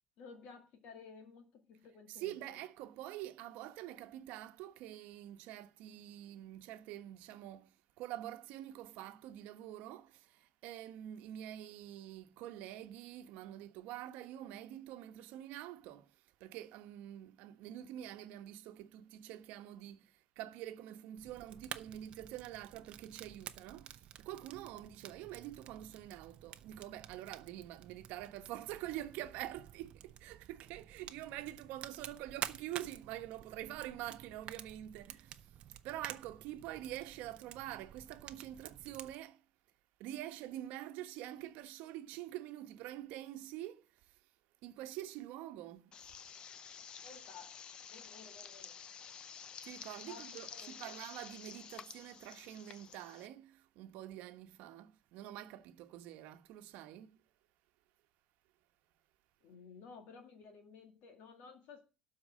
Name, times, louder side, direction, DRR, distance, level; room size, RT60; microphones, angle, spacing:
voice 1, 0.2-2.6 47.0-47.5 47.9-48.8 50.1-51.0 59.4-61.8, left 5 dB, 60° left, 2.0 m, -55 dB
voice 2, 2.1-35.5 35.8-39.4 40.0-44.2 44.6-45.9 49.6-57.2, right 13 dB, 70° right, 1.1 m, -46 dB
Fire, 21.2-39.1, right 10 dB, 40° right, 0.7 m, -51 dB
sound 1, 45.9-53.3, left 7 dB, 30° left, 0.6 m, -51 dB
12.5 x 4.8 x 7.4 m
cardioid pair, 175°, 3 cm